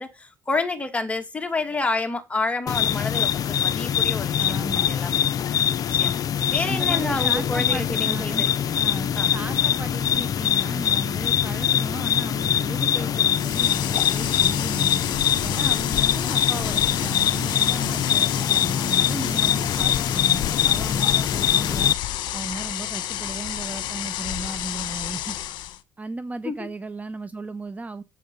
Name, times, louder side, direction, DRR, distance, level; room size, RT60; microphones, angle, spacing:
voice 1, 0.0-4.6 4.9-5.2 5.7-6.2 6.5-8.7 9.1-9.3 26.4-26.7, left 3 dB, 15° left, 2.3 m, -29 dB
sound 1, 2.7-21.9, left 9 dB, 50° left, 0.6 m, -23 dB
voice 2, 4.4-4.9 6.6-8.5 8.8-15.0 15.4-22.0 22.3-25.4 26.0-28.0, right 3 dB, 20° right, 0.7 m, -35 dB
sound 2, 11.6-19.9, right 11 dB, 65° right, 1.0 m, -42 dB
sound 3, 13.3-25.8, left 13 dB, 65° left, 1.3 m, -30 dB
11.0 x 7.6 x 5.4 m
supercardioid pair, 95°, 8 cm